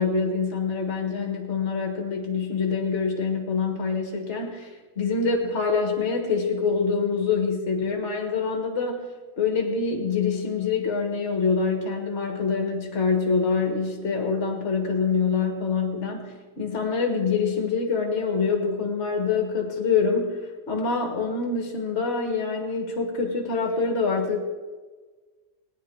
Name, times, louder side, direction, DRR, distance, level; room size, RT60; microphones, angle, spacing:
voice 1, 0.0-9.1 9.4-20.4 20.7-24.4, left 5 dB, 55° left, 2 dB, 1.9 m, -25 dB
18.5 x 9.8 x 4.7 m, 1.4 s
omnidirectional pair, 1.4 m